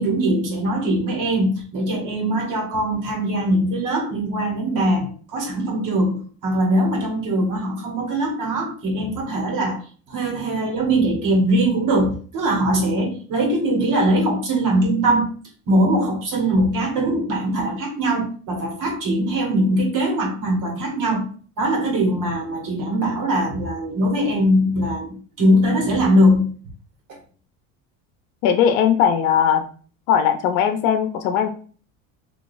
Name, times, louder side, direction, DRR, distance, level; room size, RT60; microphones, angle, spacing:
voice 1, 0.0-9.8 10.1-15.3 15.7-21.3 21.6-26.5 27.1-27.2, right 1 dB, 50° right, 1 dB, 1.4 m, -21 dB
voice 2, 28.4-29.7 30.1-31.5, left 8 dB, 85° left, 7 dB, 0.7 m, -18 dB
3.7 x 2.7 x 2.5 m, 0.41 s
supercardioid pair, 95°, 40 cm